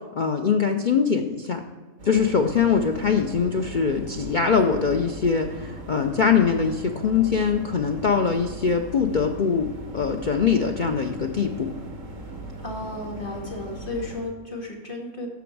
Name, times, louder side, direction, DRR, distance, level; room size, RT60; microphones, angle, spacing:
voice 1, 0.2-1.6 2.0-11.7, left 6 dB, 60° left, 4 dB, 0.5 m, -22 dB
sound 1, 2.0-14.2, right 1 dB, 65° right, 1.9 m, -39 dB
voice 2, 12.6-15.3, left 2 dB, 35° left, -1 dB, 2.1 m, -33 dB
14.0 x 5.1 x 4.6 m, 1.4 s
omnidirectional pair, 1.5 m